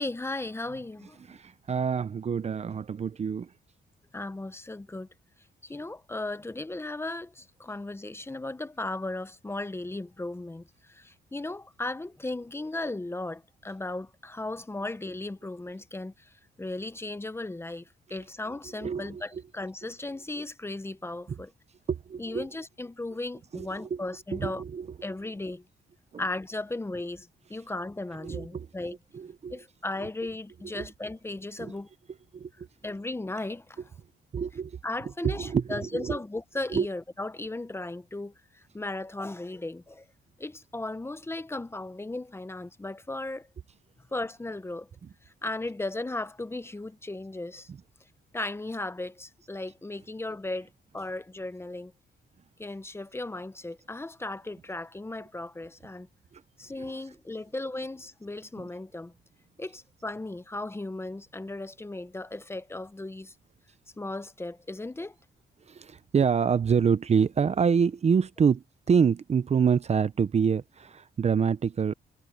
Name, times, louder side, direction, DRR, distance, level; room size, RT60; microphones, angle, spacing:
voice 1, 0.0-1.2 4.1-5.1 5.6-21.5 22.2-24.6 25.0-25.6 26.2-29.0 29.5-31.9 32.8-33.8 34.8-40.1 40.4-43.5 44.1-44.9 45.4-47.7 48.3-50.7 50.9-51.9 52.6-56.1 56.6-59.1 59.6-63.3 64.0-65.1, left 2 dB, 15° left, 0.8 m, -36 dB
voice 2, 1.3-3.5 18.8-19.4 21.9-22.5 23.5-24.0 24.3-24.9 26.1-26.2 28.2-28.7 29.1-29.5 30.0-30.1 30.8-30.9 31.6-31.7 32.3-32.7 34.3-34.8 35.2-36.2 36.7-36.9 47.7-47.8 65.7-71.9, right 6 dB, 35° right, 0.7 m, -26 dB
cardioid pair, 115°, 18 cm